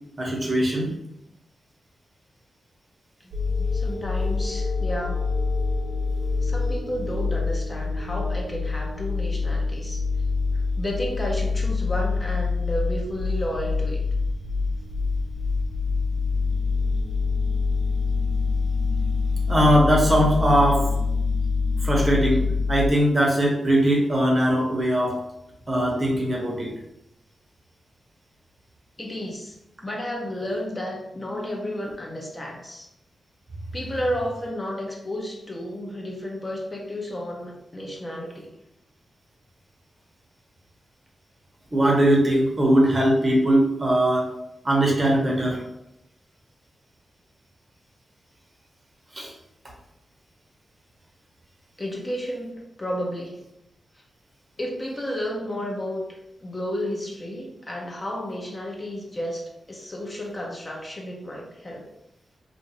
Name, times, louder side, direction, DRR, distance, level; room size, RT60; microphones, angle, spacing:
voice 1, 0.2-0.9 19.5-20.9 21.8-22.4 22.7-25.2 25.7-26.7 41.7-44.3 44.6-45.6 49.1-49.3, right 1 dB, 35° right, -2 dB, 0.9 m, -20 dB
sound 1, 3.3-22.9, left 4 dB, 75° right, 0.5 m, -25 dB
voice 2, 3.6-5.3 6.4-10.0 10.8-14.0 29.0-29.5 29.8-32.9 33.7-38.5 51.8-53.4 54.6-61.9, equal, 30° left, 0 dB, 0.6 m, -32 dB
2.5 x 2.5 x 2.9 m, 0.83 s
cardioid pair, 70°, 0 cm